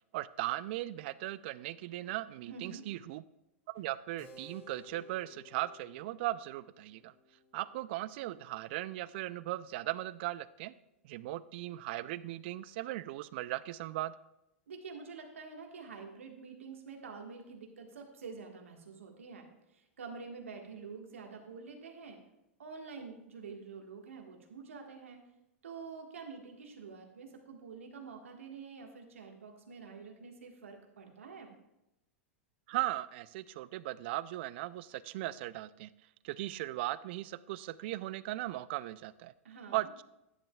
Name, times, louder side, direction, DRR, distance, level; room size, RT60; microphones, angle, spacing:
voice 1, 0.1-3.2 3.7-7.1 7.5-10.7 11.0-14.1 32.7-35.9 36.2-39.3 39.7-40.0, right 16 dB, 55° right, 18 dB, 0.4 m, -38 dB
voice 2, 2.4-2.9 14.7-19.5 19.7-22.2 22.6-25.2 25.6-31.5 39.4-39.9, right 5 dB, 75° right, 3 dB, 1.5 m, -47 dB
Keyboard (musical), 4.2-10.3, left 3 dB, 65° left, 1.8 m, -59 dB
11.5 x 9.6 x 2.3 m, 0.88 s
hypercardioid pair, 95°, 7 cm